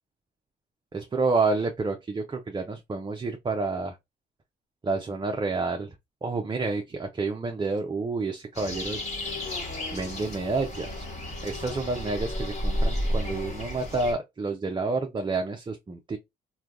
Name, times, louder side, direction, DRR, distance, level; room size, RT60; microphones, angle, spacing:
voice 1, 0.9-4.0 4.8-5.9 6.2-9.0 9.9-11.1 11.4-16.2, right 3 dB, 25° right, 0.6 m, -29 dB
sound 1, 8.5-14.1, left 1 dB, 35° left, 1.4 m, -32 dB
3.2 x 2.3 x 2.4 m
cardioid pair, 90°, 20 cm